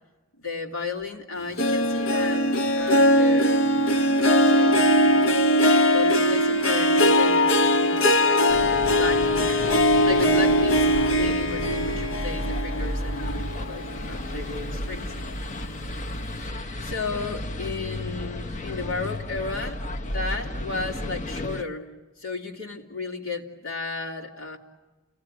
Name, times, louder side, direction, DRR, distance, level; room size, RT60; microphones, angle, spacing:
voice 1, 0.4-5.4 5.9-15.1 16.8-21.9 22.2-24.6, left 3 dB, 90° left, 0 dB, 3.2 m, -34 dB
Harp, 1.6-14.3 14.7-15.1 15.6-15.7, equal, 70° left, 1.0 m, -21 dB
sound 1, 8.5-21.6, left 1 dB, 35° left, 0.9 m, -33 dB
29.5 x 18.0 x 8.9 m, 1.2 s
head